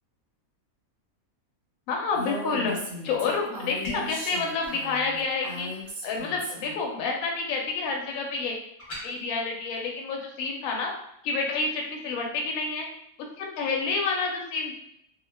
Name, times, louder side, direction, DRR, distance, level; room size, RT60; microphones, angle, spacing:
voice 1, 1.9-2.7 3.0-5.7 6.0-8.6 9.0-10.9 11.2-12.9 13.4-14.7, left 4 dB, 75° left, 1 dB, 1.0 m, -29 dB
Female speech woman speaking, 2.1-6.8, equal, 60° right, 0.7 m, -37 dB
sound 1, 3.8-4.2 8.8-9.1, left 2 dB, 45° left, 0.8 m, -35 dB
2.3 x 2.2 x 3.2 m, 0.74 s
omnidirectional pair, 1.5 m